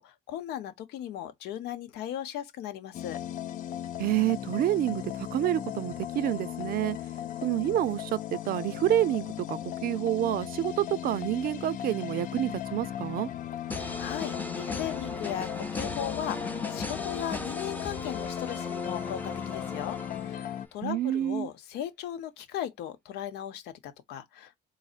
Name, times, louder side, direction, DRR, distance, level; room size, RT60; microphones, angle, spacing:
voice 1, 0.0-3.2 14.0-24.6, left 10 dB, 80° left, 0.8 m, -37 dB
sound 1, 2.9-20.7, left 11 dB, 50° left, 0.4 m, -37 dB
voice 2, 4.0-7.0 7.4-13.3 20.8-21.5, right 13 dB, 60° right, 0.5 m, -28 dB
sound 2, 13.7-20.6, left 2 dB, 10° left, 0.7 m, -37 dB
4.0 x 2.7 x 2.4 m
cardioid pair, 110°, 17 cm